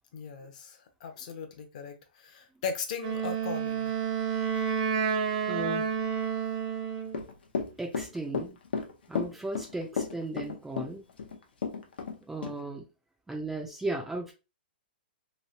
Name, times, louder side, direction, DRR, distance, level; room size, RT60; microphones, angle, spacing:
voice 1, 0.1-3.9, left 6 dB, 45° left, 0.7 m, -38 dB
Wind instrument woodwind instrument, 3.0-7.2, right 7 dB, 45° right, 0.7 m, -30 dB
voice 2, 5.5-5.9 7.8-8.6 9.1-11.0 12.3-12.8 13.3-14.3, right 2 dB, 5° right, 0.4 m, -36 dB
Run / Walk footsteps, 7.1-12.2 12.4-12.5, left 5 dB, 85° left, 0.7 m, -33 dB
3.1 x 2.7 x 2.8 m
hypercardioid pair, 160°, 5 cm